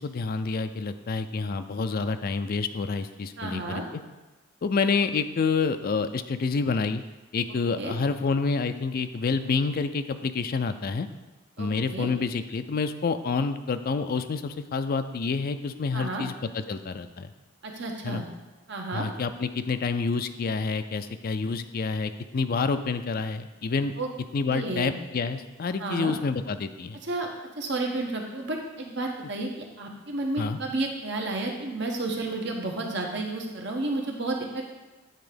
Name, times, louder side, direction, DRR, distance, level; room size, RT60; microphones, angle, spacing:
voice 1, 0.0-4.0 4.6-7.0 7.3-11.1 11.6-17.3 18.0-18.2 18.9-23.9 24.3-27.0 30.4-30.6, left 4 dB, 50° left, 9 dB, 0.4 m, -28 dB
voice 2, 3.4-3.8 7.8-7.9 11.6-12.1 15.9-16.2 17.6-18.3 18.7-19.1 24.0-24.1 24.5-24.9 25.8-26.1 27.0-27.3 27.6-34.8, right 2 dB, 60° right, 1 dB, 1.1 m, -31 dB
9.0 x 3.5 x 5.1 m, 1.1 s
head